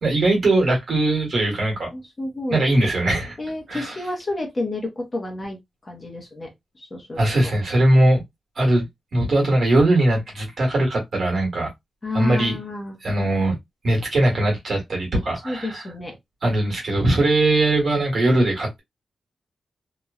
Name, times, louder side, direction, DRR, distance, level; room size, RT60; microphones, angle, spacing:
voice 1, 0.0-1.9 2.5-3.4 3.7-4.0 7.2-8.2 8.5-8.8 9.1-11.7 12.1-12.6 13.0-13.6 13.8-15.8 16.4-18.8, right 1 dB, 55° right, 1.4 m, -20 dB
voice 2, 1.9-2.6 3.4-7.5 12.0-13.0 15.4-16.2, left 2 dB, 25° left, 0.7 m, -30 dB
2.9 x 2.2 x 2.3 m
wide cardioid pair, 175°, 0 cm